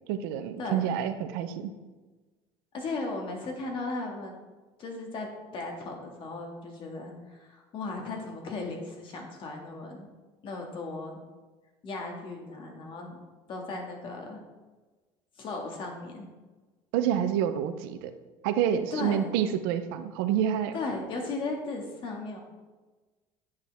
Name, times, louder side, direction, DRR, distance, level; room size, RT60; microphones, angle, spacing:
voice 1, 0.1-1.7 16.9-18.1 18.4-20.8, right 9 dB, 80° right, 9 dB, 0.7 m, -28 dB
voice 2, 2.7-4.4 4.8-10.1 10.4-11.2 11.8-13.2 13.5-14.4 15.4-16.3 18.9-19.3 20.7-22.4, left 3 dB, 45° left, 1 dB, 2.0 m, -36 dB
8.9 x 6.6 x 3.6 m, 1.3 s
supercardioid pair, 115°, 12 cm